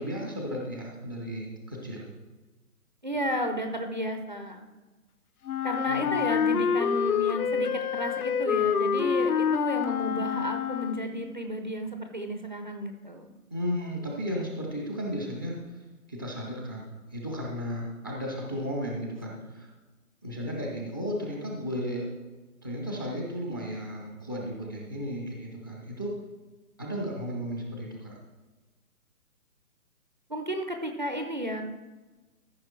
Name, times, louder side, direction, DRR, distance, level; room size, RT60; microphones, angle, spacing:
voice 1, 0.0-2.1 5.8-6.2 13.5-15.6 16.1-19.7 20.2-22.1 22.6-26.1 26.8-28.1, equal, 15° left, -1 dB, 0.7 m, -34 dB
voice 2, 3.0-4.6 5.6-13.3 30.3-31.6, equal, 30° right, 5 dB, 0.6 m, -32 dB
Wind instrument woodwind instrument, 5.5-11.2, left 7 dB, 70° left, 0.7 m, -27 dB
13.5 x 5.6 x 4.3 m, 1.2 s
hypercardioid pair, 170°, 45 cm